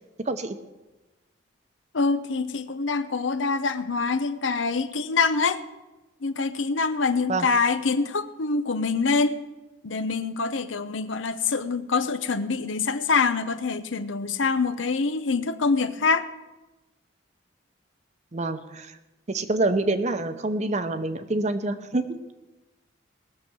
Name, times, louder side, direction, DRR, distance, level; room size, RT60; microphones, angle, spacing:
voice 1, 0.2-0.6 7.3-7.5 18.3-19.0 19.3-22.0, right 2 dB, 40° right, 9 dB, 0.8 m, -26 dB
voice 2, 1.9-5.6 6.2-9.4 9.8-16.3, left 4 dB, 85° left, 12 dB, 0.8 m, -25 dB
19.5 x 6.9 x 6.2 m, 1.1 s
head